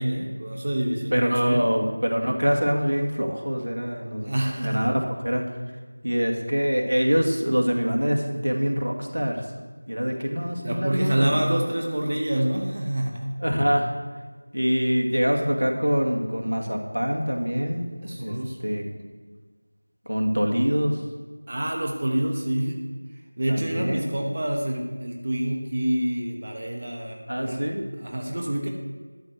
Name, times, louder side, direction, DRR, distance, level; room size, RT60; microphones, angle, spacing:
voice 1, 0.0-1.6 4.2-4.9 10.5-13.3 18.0-18.8 21.5-22.8 23.4-27.7 28.0-28.7, right 1 dB, 35° right, 1 dB, 1.1 m, -27 dB
voice 2, 1.1-5.5 6.0-9.5 9.9-11.4 13.4-13.9 14.5-17.8 18.2-18.4 18.6-18.8 20.1-21.0 23.5-24.0 27.3-27.8, equal, 85° right, 1 dB, 2.2 m, -24 dB
12.0 x 6.4 x 6.5 m, 1.4 s
figure-of-eight pair, 175°, 0 cm